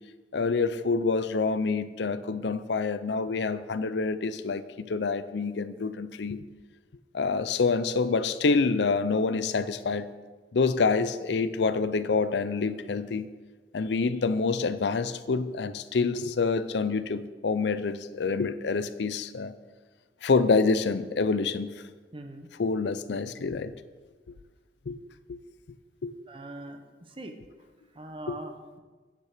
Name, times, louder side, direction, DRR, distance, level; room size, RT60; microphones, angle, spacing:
voice 1, 0.3-6.4 7.1-10.1 10.5-13.3 13.7-19.5 20.2-21.7 22.6-23.7 24.9-25.0 25.3-25.4 26.0-26.1 28.3-28.4, left 4 dB, 75° left, 13 dB, 0.5 m, -27 dB
voice 2, 22.1-22.5 26.3-26.8 27.1-27.4 27.9-28.8, right 1 dB, 30° right, 6 dB, 1.0 m, -41 dB
9.4 x 9.2 x 5.0 m, 1.3 s
head